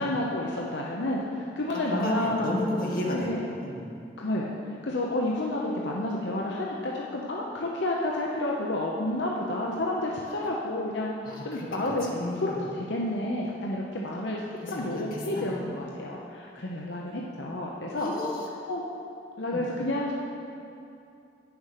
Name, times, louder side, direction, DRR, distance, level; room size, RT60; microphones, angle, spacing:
voice 1, 0.0-3.4 4.2-4.5 4.8-11.1 11.4-12.0 12.4-18.1 18.7-18.8 19.4-20.1, left 1 dB, 80° left, -3 dB, 0.8 m, -30 dB
voice 2, 1.9-3.9 11.3-12.7 14.6-15.7 18.0-18.4 19.5-19.6, left 1 dB, 50° left, -3 dB, 1.6 m, -33 dB
9.1 x 6.9 x 5.7 m, 2.7 s
head